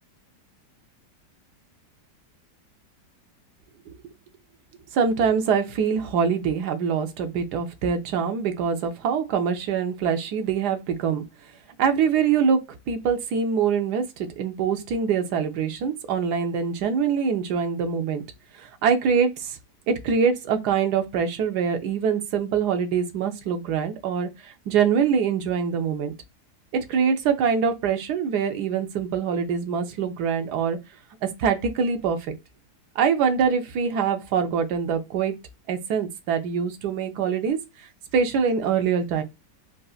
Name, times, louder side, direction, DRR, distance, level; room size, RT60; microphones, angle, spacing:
voice 1, 4.9-11.2 11.8-18.2 18.6-19.6 19.9-26.1 26.7-30.8 31.2-32.2 33.0-35.3 35.7-37.6 38.1-39.2, right 6 dB, 70° right, 1.2 m, -24 dB
4.0 x 2.4 x 2.3 m
omnidirectional pair, 1.9 m